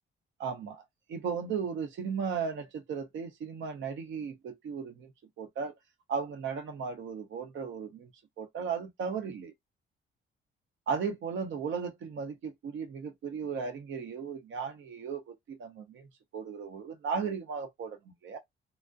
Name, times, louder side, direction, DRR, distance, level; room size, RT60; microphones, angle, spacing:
voice 1, 0.4-0.8 1.1-5.1 5.4-5.7 6.1-8.1 8.4-9.5 10.9-18.4, right 6 dB, 70° right, 0.8 m, -36 dB
2.3 x 2.1 x 2.5 m
cardioid pair, 90°, 20 cm